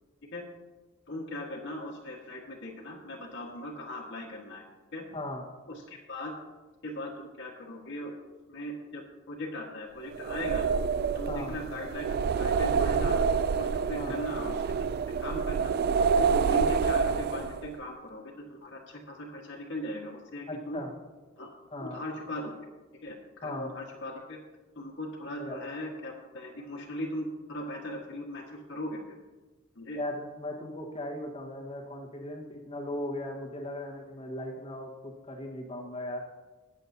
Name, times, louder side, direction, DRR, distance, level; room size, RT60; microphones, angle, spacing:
voice 1, 1.1-4.7 4.9-5.0 5.7-6.4 6.8-8.1 8.5-10.7 11.1-13.2 13.5-14.6 15.2-15.7 16.3-20.8 21.4-21.5 21.8-22.5 23.0-24.4 24.8-29.0 29.8-30.0, left 1 dB, 60° left, -3 dB, 1.7 m, -39 dB
sound 1, 10.1-17.7, right 5 dB, 45° right, 0.3 m, -27 dB
voice 2, 20.5-20.9 21.7-22.0 23.4-23.7 25.4-25.6 30.0-36.2, left 1 dB, 30° left, 1 dB, 1.4 m, -37 dB
21.5 x 7.5 x 2.8 m, 1.3 s
head